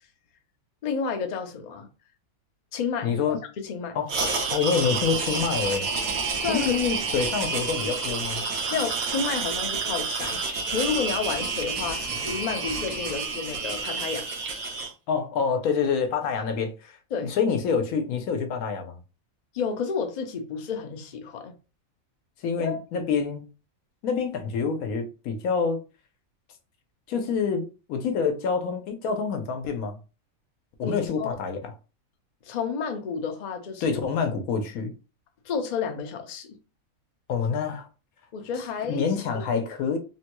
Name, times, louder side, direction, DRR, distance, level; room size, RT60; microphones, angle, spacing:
voice 1, 0.8-1.9 2.7-4.0 6.4-6.8 8.7-10.4 10.7-14.3 17.1-17.4 19.5-21.5 22.6-22.8 30.8-31.3 32.5-34.0 35.4-36.6 38.3-39.5, left 6 dB, 60° left, 0.4 m, -31 dB
voice 2, 3.0-3.4 3.9-4.1 4.5-5.9 6.5-8.4 15.1-17.0 17.2-19.0 22.4-23.5 24.0-25.8 27.1-30.0 30.8-31.7 33.8-34.9 37.3-37.9 38.9-40.0, left 6 dB, 90° left, 1.1 m, -27 dB
sound 1, 4.1-14.9, right 4 dB, 80° right, 1.2 m, -29 dB
3.5 x 2.2 x 2.9 m
omnidirectional pair, 1.5 m